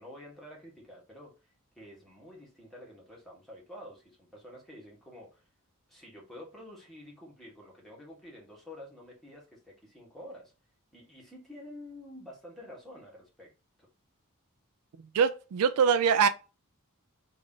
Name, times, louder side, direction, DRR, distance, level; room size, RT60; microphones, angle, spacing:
voice 1, 0.0-5.5 5.9-10.5 10.9-13.5 13.8-13.9, left 1 dB, ahead, 1.4 m, -49 dB
voice 2, 15.1-16.3, right 6 dB, 75° right, 0.4 m, -23 dB
3.2 x 2.6 x 3.7 m
head